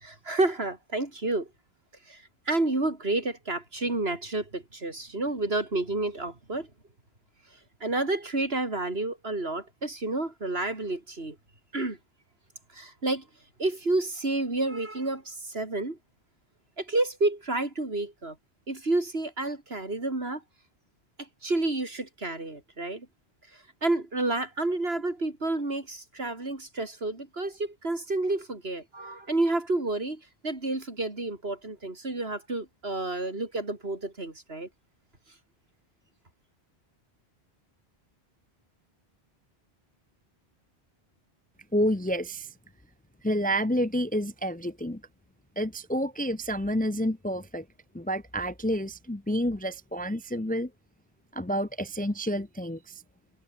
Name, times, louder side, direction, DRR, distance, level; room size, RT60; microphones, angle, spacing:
voice 1, 0.0-1.5 2.1-6.7 7.8-11.4 11.7-12.0 12.7-13.2 13.6-16.0 16.8-18.4 18.7-20.4 21.2-23.1 23.5-34.7, right 2 dB, 70° right, 4.2 m, -30 dB
voice 2, 41.7-42.5 43.2-45.0 45.6-47.6 47.9-50.7 51.3-53.0, equal, 10° left, 0.7 m, -29 dB
omnidirectional pair, 1.1 m